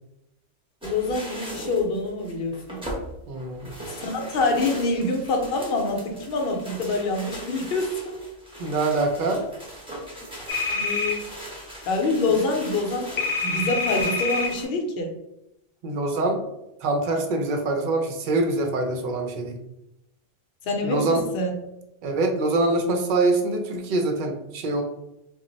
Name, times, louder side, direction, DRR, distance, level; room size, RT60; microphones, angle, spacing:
voice 1, 0.8-2.5 3.9-8.1 10.7-11.3 11.9-15.1 20.6-21.5, left 2 dB, 60° left, 2 dB, 0.7 m, -26 dB
sound 1, 0.8-14.6, right 1 dB, 5° right, 0.5 m, -39 dB
voice 2, 3.3-3.7 8.6-9.4 15.8-16.4 16.8-19.6 20.8-21.2 22.0-24.8, right 2 dB, 60° right, 3 dB, 0.5 m, -24 dB
sound 2, 10.5-11.1 13.2-14.5, left 4 dB, 80° left, 0.3 m, -26 dB
2.2 x 2.0 x 3.8 m, 0.87 s
omnidirectional pair, 1.2 m